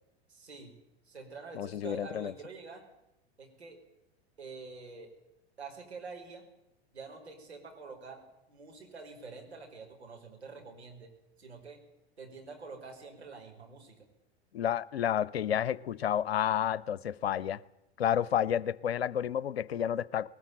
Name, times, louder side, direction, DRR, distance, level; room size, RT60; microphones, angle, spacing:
voice 1, 0.3-0.7 1.0-2.9 3.4-3.8 4.4-5.1 5.6-6.5 6.9-11.8 12.2-14.0, right 4 dB, 80° right, 5.4 m, -47 dB
voice 2, 1.5-2.3 14.5-17.6 18.0-20.3, left 9 dB, 70° left, 0.9 m, -30 dB
20.5 x 20.0 x 8.9 m
figure-of-eight pair, 85°, 33 cm